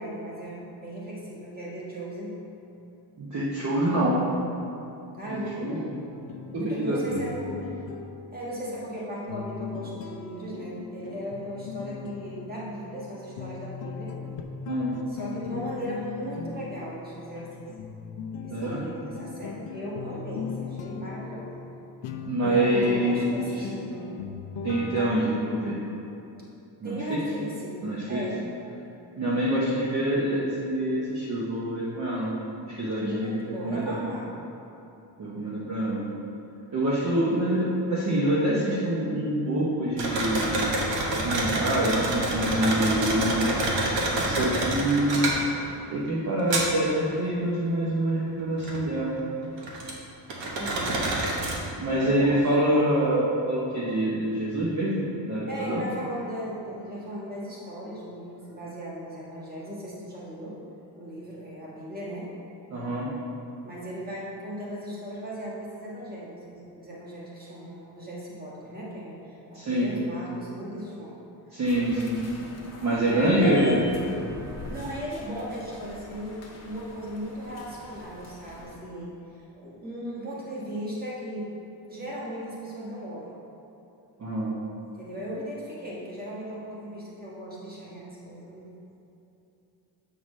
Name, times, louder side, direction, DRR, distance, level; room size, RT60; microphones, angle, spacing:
voice 1, 0.0-2.3 5.2-6.0 6.5-7.7 8.3-14.1 15.1-17.7 18.4-21.6 22.5-24.2 26.8-27.8 28.1-28.4 33.0-34.3 50.6-51.1 51.9-52.5 55.5-60.6 60.9-62.3 63.6-71.1 71.5-71.6 73.0-73.7 74.7-79.1 79.5-81.5 81.9-83.4 83.9-84.0 85.0-88.7, equal, 20° right, -6 dB, 1.4 m, -37 dB
voice 2, 3.2-4.2 5.6-5.8 6.8-7.5 14.7-15.0 18.5-18.8 22.3-23.4 24.6-25.7 26.8-27.2 27.8-28.2 29.2-32.3 32.7-33.4 33.6-34.0 35.2-36.0 36.7-40.6 41.1-45.3 45.9-49.2 51.8-55.8 62.7-63.1 69.5-69.9 71.5-72.2 72.8-73.8 84.2-84.5, right 1 dB, 40° right, -6 dB, 0.9 m, -26 dB
sound 1, 5.9-25.8, left 6 dB, 80° left, 0.6 m, -38 dB
sound 2, 40.0-45.9 46.4-47.0 48.1-48.2 48.6-49.9 50.3-51.8, right 2 dB, 80° right, 1.2 m, -27 dB
sound 3, 71.6-78.8, left 2 dB, 35° left, 1.0 m, -40 dB
7.6 x 5.7 x 3.2 m, 2.9 s
cardioid pair, 160°, 43 cm